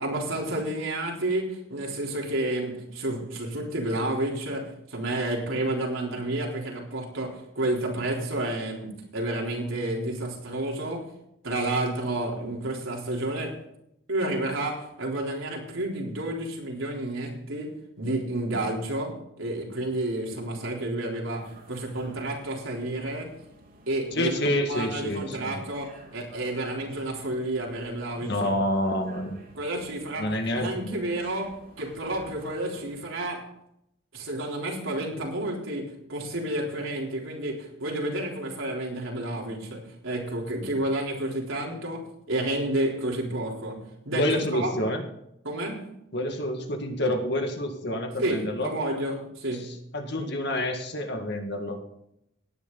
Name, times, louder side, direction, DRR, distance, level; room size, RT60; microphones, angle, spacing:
voice 1, 0.0-11.1 11.4-13.6 14.1-23.3 23.9-28.4 29.5-33.5 34.1-44.8 45.4-45.9 48.2-49.8, right 1 dB, 85° right, -1 dB, 3.9 m, -30 dB
sound 1, 21.3-33.0, right 1 dB, 45° right, 3.7 m, -52 dB
voice 2, 24.2-25.6 28.2-29.4 30.2-30.9 44.1-45.0 46.1-48.7 49.6-51.8, left 1 dB, 55° left, 5 dB, 2.0 m, -28 dB
18.0 x 9.9 x 4.1 m, 0.77 s
head